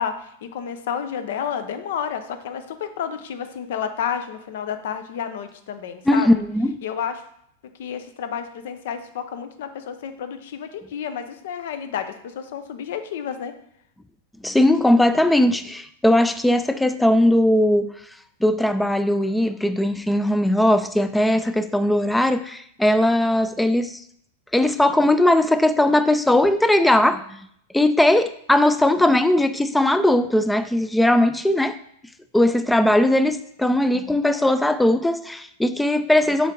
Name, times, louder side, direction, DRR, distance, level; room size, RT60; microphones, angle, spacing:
voice 1, 0.0-6.3 6.8-7.2 7.8-13.5, left 8 dB, 70° left, 0.7 m, -30 dB
voice 2, 6.1-6.8 14.4-17.9 18.4-24.0 24.5-27.4 27.7-31.8 32.3-36.5, left 1 dB, 5° left, 0.3 m, -19 dB
7.2 x 3.6 x 3.8 m
hypercardioid pair, 135°, 0 cm